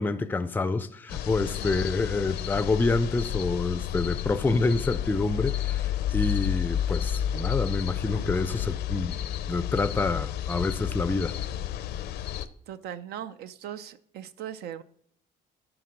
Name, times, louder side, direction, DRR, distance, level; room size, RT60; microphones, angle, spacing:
voice 1, 0.0-9.2 9.5-11.4, left 3 dB, 10° left, 0.4 m, -27 dB
sound 1, 1.1-12.5, left 11 dB, 75° left, 0.6 m, -31 dB
voice 2, 12.7-14.8, right 10 dB, 70° right, 0.6 m, -39 dB
11.0 x 3.9 x 5.1 m
cardioid pair, 110°, 17 cm